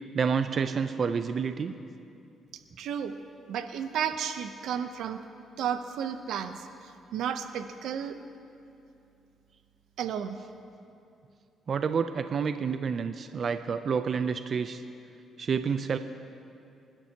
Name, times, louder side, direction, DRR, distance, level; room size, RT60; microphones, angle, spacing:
voice 1, 0.1-1.7 11.7-14.8 15.4-16.0, right 6 dB, 50° right, 9 dB, 0.5 m, -29 dB
voice 2, 2.8-3.1 3.5-5.2 5.6-6.7 7.1-8.2 10.0-10.4, right 8 dB, 80° right, 9 dB, 0.8 m, -32 dB
27.0 x 12.0 x 2.9 m, 2.6 s
cardioid pair, 90°, 0 cm